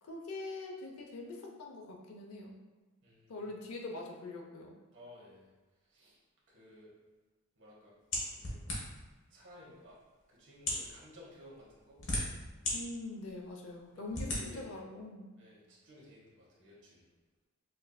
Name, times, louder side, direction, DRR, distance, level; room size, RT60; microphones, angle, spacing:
voice 1, 0.0-2.6 3.3-4.8 12.7-15.3, left 2 dB, 90° left, 0 dB, 0.6 m, -43 dB
voice 2, 3.0-3.5 4.9-5.5 5.9-6.2 6.5-6.9 7.6-7.9 8.3-8.6 9.3-10.0 10.3-12.0 13.9-14.6 15.4-17.1, left 1 dB, 60° right, -5 dB, 1.1 m, -56 dB
sound 1, 8.1-9.1 9.9-10.0 10.5-10.9 11.7-12.7 13.3-13.4 14.1-14.4, left 1 dB, 60° left, 1.0 m, -35 dB
5.2 x 2.6 x 2.2 m, 1.2 s
head